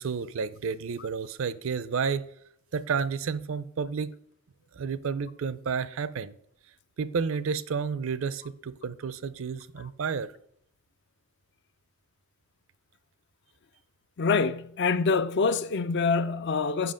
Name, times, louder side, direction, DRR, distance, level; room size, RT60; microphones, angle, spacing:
voice 1, 0.0-2.2 2.7-4.1 4.7-6.3 7.0-10.3, right 5 dB, 65° right, 0.4 m, -31 dB
voice 2, 14.2-16.9, left 4 dB, 55° left, 0.4 m, -25 dB
7.5 x 5.7 x 5.0 m
head